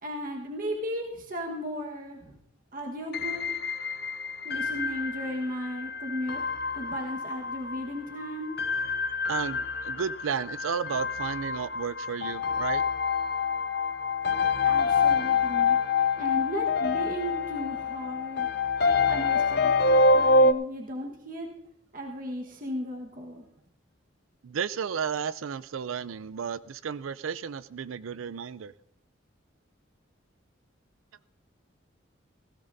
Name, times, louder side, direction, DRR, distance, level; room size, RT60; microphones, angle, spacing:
voice 1, 0.0-2.4 2.7-3.4 4.4-6.4 6.7-8.5 14.6-15.8 16.2-18.5 19.1-21.5 21.9-23.5, equal, 45° right, 1 dB, 1.4 m, -35 dB
sound 1, 3.1-20.5, left 4 dB, 50° left, 0.6 m, -26 dB
voice 2, 9.3-12.8 18.8-18.9 24.4-28.7, right 7 dB, 90° right, 16 dB, 0.4 m, -33 dB
17.0 x 15.5 x 2.7 m, 0.72 s
head